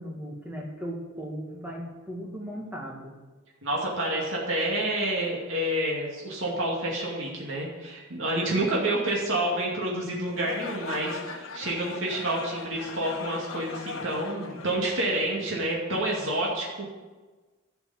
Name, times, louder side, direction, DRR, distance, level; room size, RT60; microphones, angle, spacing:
voice 1, 0.0-3.1 8.3-8.6, equal, 10° right, -1 dB, 1.9 m, -37 dB
voice 2, 3.6-16.8, right 1 dB, 75° right, -3 dB, 2.4 m, -28 dB
sound 1, 10.3-15.5, left 4 dB, 85° left, 1.1 m, -39 dB
12.5 x 7.1 x 7.2 m, 1.3 s
head